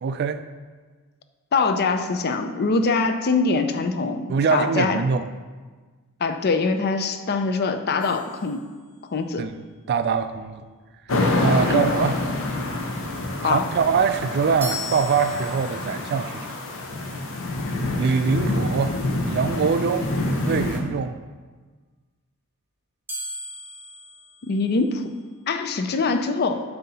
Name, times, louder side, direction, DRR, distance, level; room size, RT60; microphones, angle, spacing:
voice 1, 0.0-0.4 4.3-5.3 9.4-9.5 9.9-10.6 11.4-12.2 13.4-16.5 18.0-19.0 19.3-20.1 20.4-21.2, right 5 dB, 45° right, 11 dB, 0.3 m, -23 dB
voice 2, 1.5-5.0 6.2-8.6 9.1-9.5 11.7-11.8 13.4-13.7 24.4-25.1 25.5-26.6, left 4 dB, 45° left, 7 dB, 0.4 m, -23 dB
sound 1, 8.0-9.3 14.6-16.1 23.1-25.2, left 2 dB, 10° right, 0.8 m, -38 dB
sound 2, 11.1-20.8, left 2 dB, 60° left, 0.8 m, -27 dB
7.7 x 2.8 x 5.5 m, 1.4 s
head